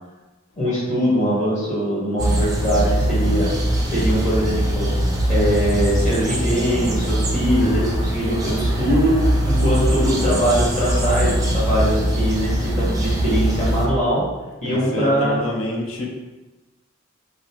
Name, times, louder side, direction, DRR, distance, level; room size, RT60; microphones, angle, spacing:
voice 1, 0.6-3.5 3.8-4.9 5.3-14.2 14.6-15.4, equal, 35° left, -8 dB, 1.0 m, -22 dB
sound 1, 2.2-13.9, right 1 dB, 15° right, 0.4 m, -21 dB
voice 2, 14.6-16.1, left 1 dB, 70° left, 1 dB, 0.5 m, -27 dB
2.9 x 2.0 x 2.7 m, 1.1 s
head